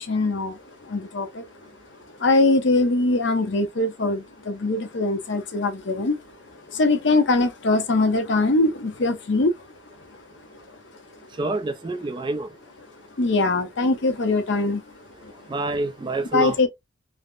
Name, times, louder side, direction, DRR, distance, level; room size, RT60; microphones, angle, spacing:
voice 1, 0.0-1.4 2.2-6.2 6.7-9.5 13.2-14.8 15.2-15.3 16.3-16.7, left 2 dB, 65° left, 0.7 m, -22 dB
voice 2, 11.4-12.5 15.5-16.6, right 2 dB, 25° right, 0.3 m, -27 dB
3.3 x 2.0 x 2.3 m
head